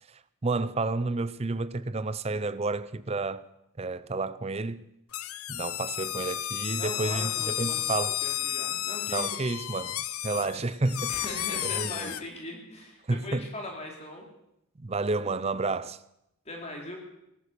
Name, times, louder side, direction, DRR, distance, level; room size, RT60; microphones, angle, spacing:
voice 1, 0.4-3.5 3.8-4.9 5.5-8.2 9.1-10.0 10.2-11.2 11.6-12.1 13.1-13.5 14.8-16.0, right 3 dB, 30° right, 0.5 m, -30 dB
sound 1, 5.1-12.2, left 13 dB, 80° left, 0.7 m, -32 dB
voice 2, 6.8-8.0 8.2-9.3 11.1-14.2 16.4-17.0, left 1 dB, 30° left, 2.9 m, -40 dB
18.0 x 11.5 x 6.8 m
head